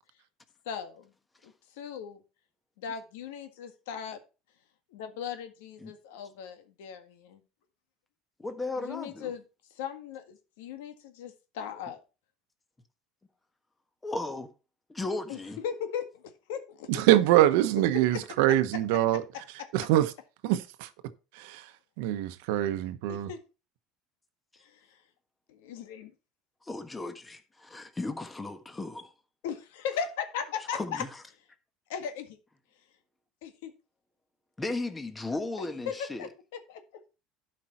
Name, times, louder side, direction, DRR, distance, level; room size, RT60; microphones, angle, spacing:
voice 1, 0.6-1.1 1.4-2.2 2.8-4.2 4.9-7.4 8.7-9.4 9.7-12.0 15.3-15.4 15.6-16.9 23.1-23.4 24.6-25.0 25.5-26.1 29.4-31.0 31.9-32.4 33.4-33.7 35.6-36.3 36.7-36.8, left 7 dB, 90° left, 1.7 m, -38 dB
voice 2, 8.4-9.3 14.0-14.5 14.9-15.6 26.6-29.1 30.7-31.1 34.6-36.3, left 2 dB, 15° left, 1.3 m, -35 dB
voice 3, 16.9-19.2 19.7-20.1 20.4-20.9 21.4-21.6 22.0-23.3, right 13 dB, 80° right, 0.9 m, -24 dB
12.0 x 5.4 x 4.4 m
supercardioid pair, 125°, 0 cm